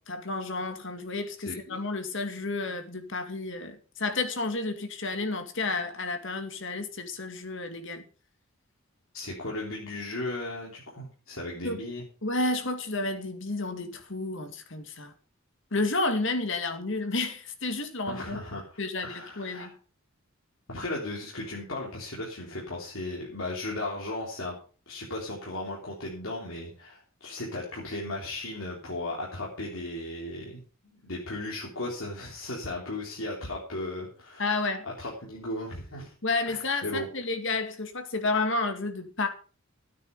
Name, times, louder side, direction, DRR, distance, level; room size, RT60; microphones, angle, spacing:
voice 1, 0.0-8.0 11.6-11.8 12.2-15.1 15.7-18.4 18.8-19.8 34.4-34.9 36.2-39.3, left 3 dB, 65° left, 2.2 m, -31 dB
voice 2, 1.4-1.8 9.1-12.1 18.1-18.7 19.0-19.7 20.7-24.5 24.9-34.5 34.8-36.1 36.5-37.1, left 2 dB, 80° left, 3.6 m, -36 dB
13.5 x 9.2 x 5.5 m
head